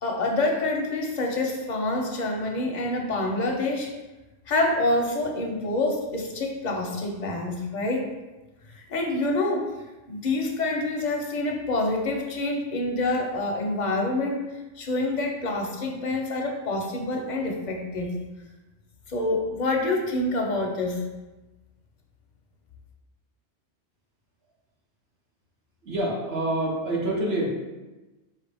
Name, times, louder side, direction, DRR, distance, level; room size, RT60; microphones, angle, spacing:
voice 1, 0.0-3.9 4.5-8.1 8.7-9.7 10.1-14.5 14.8-18.2 19.1-21.0, left 2 dB, 50° left, 1 dB, 0.6 m, -27 dB
voice 2, 25.8-27.5, right 1 dB, 60° right, -3 dB, 1.2 m, -26 dB
4.5 x 3.2 x 3.4 m, 1.1 s
omnidirectional pair, 1.3 m